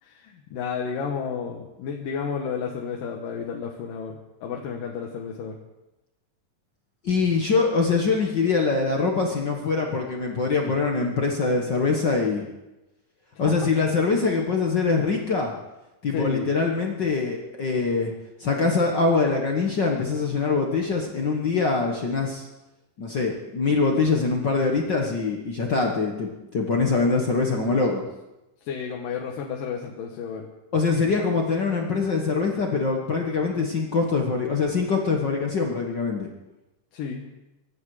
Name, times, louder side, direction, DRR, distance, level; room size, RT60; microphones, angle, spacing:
voice 1, 0.0-5.6 13.3-13.5 16.1-16.5 28.6-30.5 36.9-37.3, left 6 dB, 75° left, 1 dB, 2.8 m, -32 dB
voice 2, 7.0-12.5 13.4-15.5 16.0-18.1 18.4-22.5 23.0-28.1 30.7-36.3, left 4 dB, 55° left, 1 dB, 1.3 m, -23 dB
24.0 x 11.0 x 4.9 m, 0.98 s
omnidirectional pair, 4.0 m